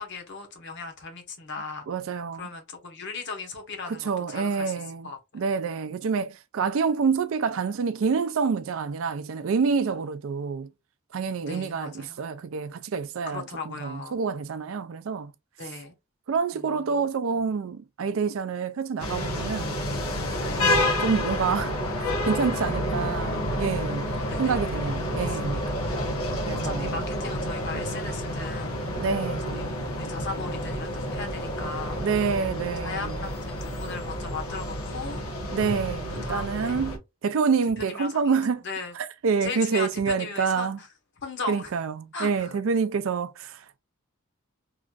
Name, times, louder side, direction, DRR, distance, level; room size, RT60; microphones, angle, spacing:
voice 1, 0.0-1.9 2.4-4.7 5.0-5.2 11.4-12.2 13.3-14.2 15.6-15.9 16.5-17.4 20.4-20.7 23.9-24.6 25.2-25.4 25.6-25.8 26.4-29.1 29.5-32.0 32.8-35.2 36.2-36.8 37.8-38.9 39.4-40.9 41.2-41.7 42.1-42.6, left 4 dB, 55° left, 1.0 m, -37 dB
voice 2, 1.9-2.5 3.9-10.7 11.1-15.3 16.3-19.8 20.6-21.7 22.3-24.1 24.4-25.7 26.5-27.0 29.0-29.7 32.0-33.3 35.5-38.6 38.9-40.8 41.5-43.8, right 5 dB, 65° right, 0.4 m, -27 dB
sound 1, 19.0-37.0, left 1 dB, 85° left, 1.0 m, -29 dB
3.0 x 2.5 x 2.4 m
head